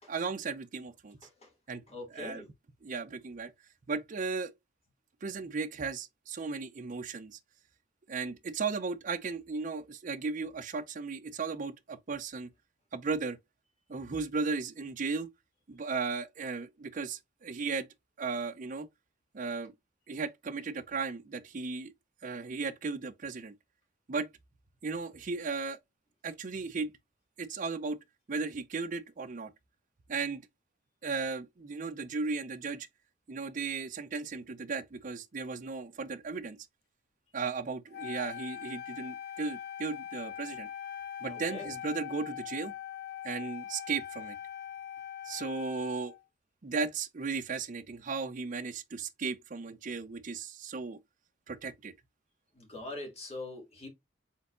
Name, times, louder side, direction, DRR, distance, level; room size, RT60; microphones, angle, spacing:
voice 1, 0.1-1.2 1.7-1.8 2.1-2.4 2.8-3.5 3.9-4.5 5.2-7.4 8.1-12.5 12.9-13.4 13.9-15.3 15.7-17.9 18.2-18.9 19.3-19.7 20.1-21.9 22.2-23.5 24.1-24.3 24.8-25.8 26.2-26.9 27.4-28.0 28.3-29.5 30.1-30.4 31.0-32.9 33.3-36.6 37.3-40.7 41.2-42.7 43.2-44.4 45.2-46.1 46.6-51.0 51.5-51.9, right 4 dB, 40° right, 0.5 m, -36 dB
voice 2, 1.9-2.5 41.3-41.7 52.5-53.9, left 2 dB, 30° left, 1.8 m, -43 dB
Wind instrument woodwind instrument, 37.9-46.2, left 10 dB, 50° left, 0.4 m, -42 dB
4.4 x 3.9 x 2.4 m
head